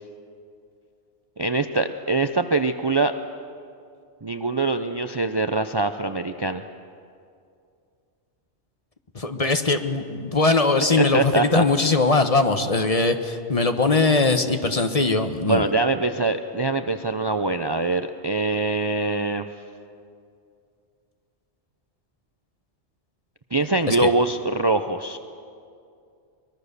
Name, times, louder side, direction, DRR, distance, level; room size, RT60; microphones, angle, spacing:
voice 1, 1.4-3.1 4.2-6.6 11.0-11.6 15.5-19.5 23.5-25.2, right 3 dB, 30° right, 8 dB, 0.5 m, -23 dB
voice 2, 9.1-15.7 23.9-24.1, left 3 dB, 35° left, 7 dB, 1.1 m, -21 dB
24.0 x 21.5 x 6.7 m, 2.4 s
omnidirectional pair, 1.1 m